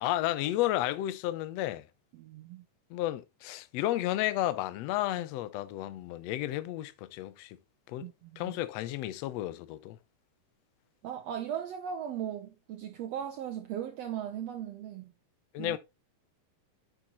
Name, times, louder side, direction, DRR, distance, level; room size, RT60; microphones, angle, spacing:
voice 1, 0.0-1.9 2.9-7.6 7.9-8.1 8.4-10.0 15.5-15.8, left 14 dB, 90° left, 1.4 m, -32 dB
voice 2, 2.2-2.6 8.0-8.6 11.0-15.1 15.6-15.8, right 9 dB, 85° right, 1.4 m, -38 dB
10.0 x 6.4 x 2.9 m
omnidirectional pair, 3.9 m